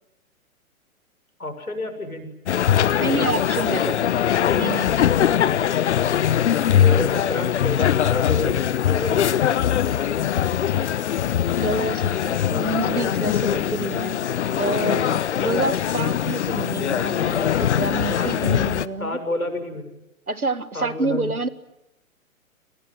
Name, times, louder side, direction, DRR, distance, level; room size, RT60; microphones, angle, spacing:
voice 1, 1.4-2.3 3.5-4.0 6.7-9.4 18.1-18.3 19.0-20.0 20.7-21.3, left 2 dB, 80° left, 8 dB, 6.9 m, -30 dB
sound 1, 2.5-18.9, left 9 dB, 50° left, 1.2 m, -22 dB
voice 2, 3.0-4.0 4.6-4.9 11.6-14.2 14.6-19.2 20.3-21.5, right 2 dB, 85° right, 15 dB, 2.0 m, -27 dB
sound 2, 6.7-11.8, left 13 dB, 35° left, 5.0 m, -50 dB
Singing, 7.4-18.3, right 7 dB, 45° right, 6.6 m, -51 dB
30.0 x 26.5 x 7.5 m, 0.89 s
figure-of-eight pair, 120°, 42 cm